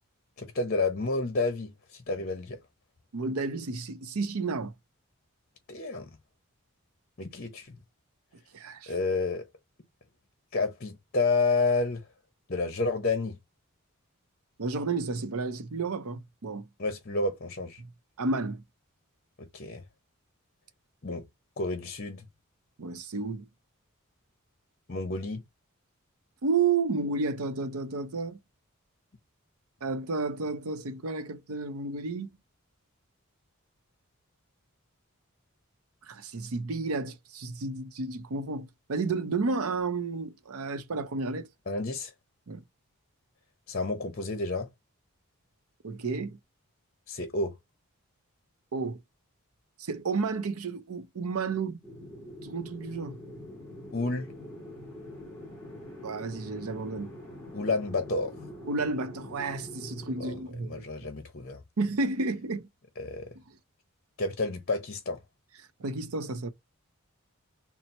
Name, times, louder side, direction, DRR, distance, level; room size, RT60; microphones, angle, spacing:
voice 1, 0.4-2.6 5.7-6.1 7.2-7.8 8.9-9.4 10.5-12.0 12.5-13.4 16.8-17.8 19.4-19.8 21.0-21.2 21.6-22.2 24.9-25.4 41.7-42.1 43.7-44.7 47.1-47.5 53.9-54.3 57.5-58.3 60.2-60.3 60.7-61.6 63.0-63.3 64.2-65.2, left 3 dB, 40° left, 0.7 m, -30 dB
voice 2, 3.1-4.7 8.5-8.9 14.6-16.7 17.8-17.9 18.2-18.6 22.8-23.5 26.4-28.4 29.8-32.3 36.0-41.5 42.5-42.6 45.8-46.4 48.7-49.0 49.8-51.8 52.4-53.2 56.0-57.1 58.7-60.8 61.8-62.7 63.5-63.6 65.8-66.5, right 4 dB, 80° right, 0.6 m, -31 dB
sound 1, 51.8-60.4, left 1 dB, 10° left, 2.3 m, -44 dB
4.2 x 2.0 x 4.2 m
head